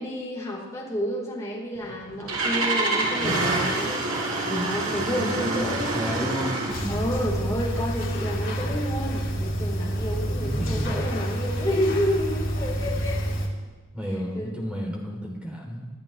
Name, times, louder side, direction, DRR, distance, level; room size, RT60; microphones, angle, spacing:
voice 1, 0.0-4.0 4.5-6.3 6.9-13.3 14.3-14.5, equal, 15° left, -5 dB, 4.2 m, -30 dB
Engine starting, 1.8-6.9, right 2 dB, 90° right, 5.2 m, -27 dB
voice 2, 5.1-7.5 10.4-10.9 13.9-15.9, equal, 5° right, -2 dB, 3.4 m, -32 dB
sound 1, 6.7-13.5, right 1 dB, 65° left, 2.7 m, -28 dB
26.5 x 12.5 x 3.4 m, 1.3 s
head